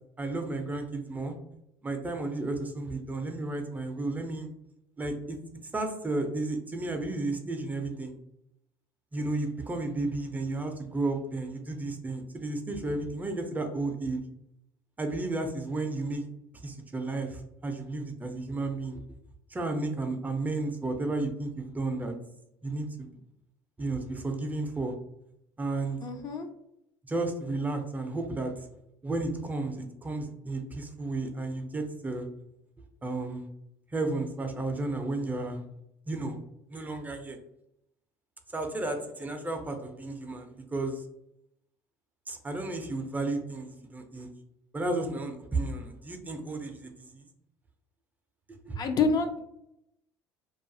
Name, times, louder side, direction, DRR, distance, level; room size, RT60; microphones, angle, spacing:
voice 1, 0.2-1.3 1.8-4.5 5.0-5.4 5.7-8.2 9.1-14.2 15.0-16.3 16.6-19.0 19.5-22.1 22.6-23.1 23.8-24.9 25.6-26.0 27.1-28.7 29.0-32.3 33.0-33.5 33.9-35.6 36.1-36.4 36.7-37.4 38.5-41.0 42.3-44.3 44.7-47.3 48.7-48.8, right 2 dB, 20° right, 5 dB, 0.4 m, -33 dB
voice 2, 26.0-26.5 48.8-49.4, left 4 dB, 40° left, 6 dB, 0.4 m, -27 dB
2.3 x 2.3 x 2.5 m, 0.78 s
supercardioid pair, 95°, 9 cm